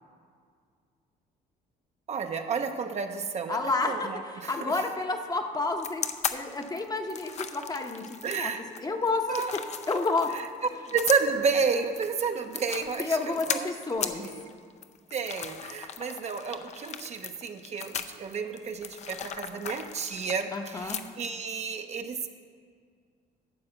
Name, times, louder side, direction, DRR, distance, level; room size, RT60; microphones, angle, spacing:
voice 1, 2.1-4.8 8.2-8.7 9.3-9.5 10.3-10.4 10.9-13.7 14.2-14.4 15.1-22.3, right 5 dB, 40° right, 6 dB, 0.7 m, -31 dB
voice 2, 3.5-6.0 6.3-8.5 8.8-9.5 9.9-10.3 13.0-14.3 20.5-21.0, left 3 dB, 20° left, 4 dB, 0.9 m, -30 dB
sound 1, 5.8-21.5, left 7 dB, 40° left, 0.6 m, -37 dB
12.0 x 4.8 x 8.0 m, 2.1 s
cardioid pair, 110°, 17 cm